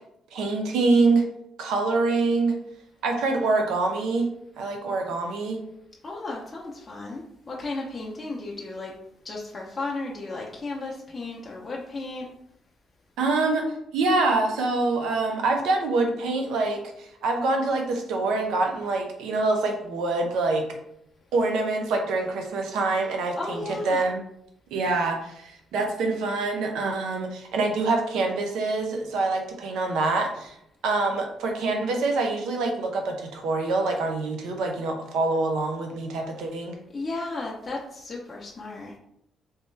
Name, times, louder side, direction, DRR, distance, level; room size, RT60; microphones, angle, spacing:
voice 1, 0.3-1.3 1.6-2.6 3.0-4.3 4.6-5.6 13.2-13.6 13.9-20.6 21.3-24.2 24.7-30.5 30.8-36.8, right 3 dB, 85° right, 3 dB, 0.6 m, -25 dB
voice 2, 6.0-8.9 9.2-12.3 23.4-24.0 36.9-38.9, left 2 dB, 30° left, -3 dB, 0.6 m, -34 dB
3.3 x 2.9 x 3.2 m, 0.77 s
cardioid pair, 90°, 0 cm